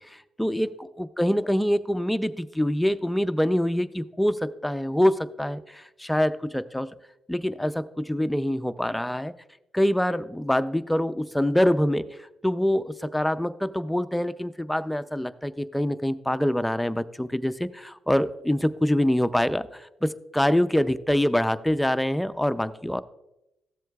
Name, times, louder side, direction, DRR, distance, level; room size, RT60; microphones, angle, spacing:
voice 1, 0.0-6.9 7.3-9.3 9.7-23.0, left 1 dB, 5° left, 12 dB, 0.4 m, -25 dB
13.5 x 7.7 x 2.3 m, 0.91 s
supercardioid pair, 65°, 0 cm